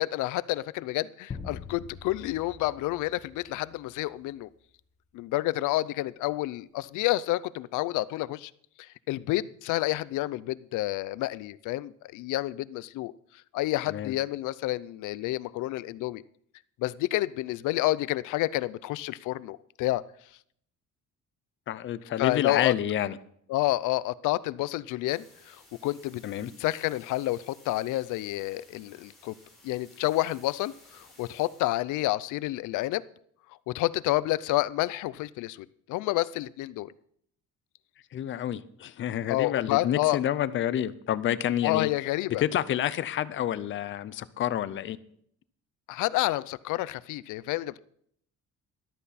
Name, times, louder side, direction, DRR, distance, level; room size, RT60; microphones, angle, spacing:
voice 1, 0.0-4.5 5.1-8.5 8.8-13.1 13.5-16.2 16.8-20.0 22.2-22.7 23.5-25.6 25.8-26.2 26.6-29.3 29.6-33.0 33.7-36.9 39.3-40.2 41.6-42.4 45.9-47.8, left 17 dB, 85° left, 18 dB, 0.6 m, -29 dB
sound 1, 1.3-3.9, left 5 dB, 25° left, 1.1 m, -43 dB
voice 2, 21.7-23.2 26.2-26.5 38.1-41.9 42.4-45.0, left 11 dB, 40° left, 16 dB, 0.6 m, -29 dB
sound 2, 25.1-31.8, left 1 dB, ahead, 6.5 m, -57 dB
14.0 x 12.5 x 4.1 m, 0.66 s
cardioid pair, 175°, 30 cm